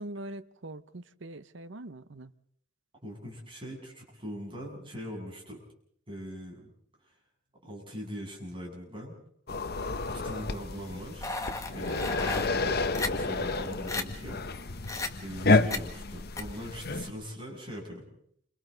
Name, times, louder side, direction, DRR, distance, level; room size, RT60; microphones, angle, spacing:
voice 1, 0.0-2.3 9.8-9.9 11.9-12.2, right 1 dB, 65° right, 0.9 m, -43 dB
voice 2, 3.0-5.6 6.1-6.7 7.6-9.1 10.1-11.3 11.7-14.4 15.2-18.1, equal, 25° right, 7.8 m, -41 dB
sound 1, 9.5-17.1, left 3 dB, 50° left, 1.0 m, -30 dB
sound 2, 11.2-12.5 12.9-13.1 13.5-13.6 13.9-14.0 14.8-15.1 15.7-15.8 16.4-16.5, left 3 dB, 15° left, 1.7 m, -33 dB
28.5 x 26.5 x 4.0 m
head